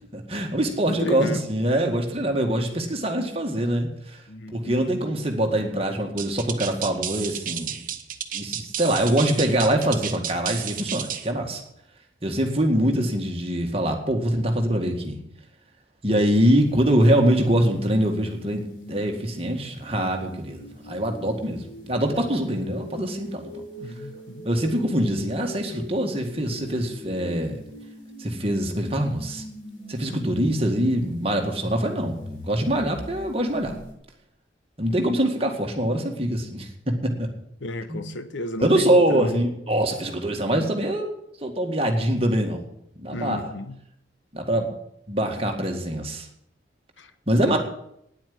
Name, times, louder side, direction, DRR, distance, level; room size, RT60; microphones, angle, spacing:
voice 1, 0.1-4.2 4.5-7.8 8.3-11.6 12.2-15.2 16.0-23.6 24.4-27.6 28.2-29.4 29.9-33.8 34.8-37.3 37.9-38.1 38.6-41.1 41.4-42.6 43.0-43.5 44.3-44.7 45.1-46.3 47.3-47.6, right 1 dB, 30° right, 2.0 m, -24 dB
voice 2, 0.8-1.4 4.3-4.8 23.8-24.5 37.6-39.4 43.1-43.8 47.0-47.1 47.4-47.6, left 1 dB, 85° left, 1.0 m, -32 dB
sound 1, 6.2-11.3, right 10 dB, 45° right, 1.0 m, -32 dB
sound 2, 16.3-33.9, equal, 50° left, 6.7 m, -41 dB
9.8 x 9.1 x 9.6 m
head